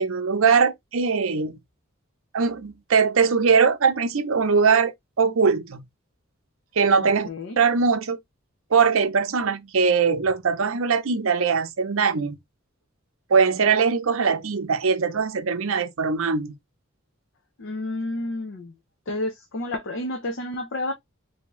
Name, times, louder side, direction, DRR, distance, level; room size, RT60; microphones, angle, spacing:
voice 1, 0.0-1.6 2.3-4.9 5.2-5.8 6.8-7.3 7.6-8.2 8.7-12.4 13.3-16.5, right 5 dB, 75° right, 0.6 m, -21 dB
voice 2, 7.0-7.6 17.6-18.7 19.1-20.9, left 1 dB, 60° left, 0.6 m, -30 dB
3.5 x 2.7 x 3.0 m
head